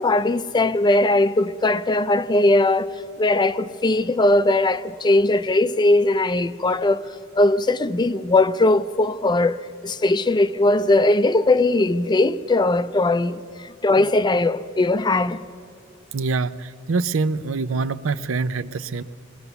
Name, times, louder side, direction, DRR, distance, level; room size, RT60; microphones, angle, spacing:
voice 1, 0.0-7.1 7.4-9.6 9.8-15.5, left 2 dB, 20° left, 0.4 m, -19 dB
voice 2, 16.1-19.0, right 4 dB, 85° right, 0.6 m, -25 dB
22.0 x 18.0 x 6.9 m
head